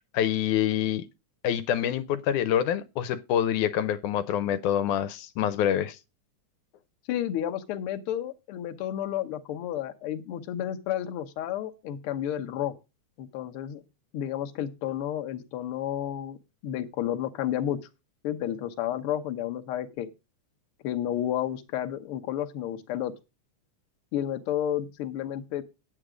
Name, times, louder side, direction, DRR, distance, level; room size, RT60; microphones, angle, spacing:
voice 1, 0.1-1.1 1.4-6.0, left 10 dB, 85° left, 2.2 m, -26 dB
voice 2, 7.1-12.7 13.2-13.8 14.1-16.4 16.6-17.8 18.2-20.1 20.8-23.1 24.1-25.6, left 11 dB, 65° left, 1.5 m, -31 dB
9.2 x 8.1 x 4.9 m
omnidirectional pair, 3.5 m